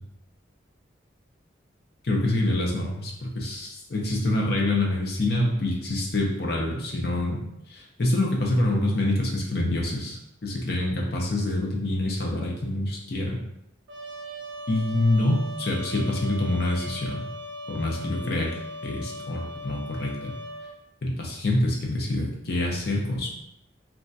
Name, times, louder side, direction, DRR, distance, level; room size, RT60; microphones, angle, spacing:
voice 1, 2.0-7.4 7.7-13.4 14.7-17.2 17.7-18.5 18.8-20.3 21.0-23.3, left 1 dB, 55° left, -1 dB, 0.6 m, -26 dB
Trumpet, 13.9-20.7, left 1 dB, 85° right, 0.5 m, -39 dB
3.0 x 2.3 x 2.6 m, 0.81 s
head